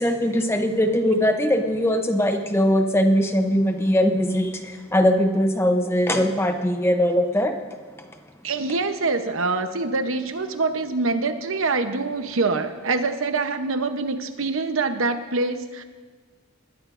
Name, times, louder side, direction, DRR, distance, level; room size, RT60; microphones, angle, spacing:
voice 1, 0.0-7.6 8.0-8.1, equal, 10° left, 5 dB, 0.7 m, -21 dB
voice 2, 8.4-15.8, right 3 dB, 75° right, 8 dB, 0.9 m, -25 dB
21.0 x 14.0 x 2.6 m, 1.5 s
head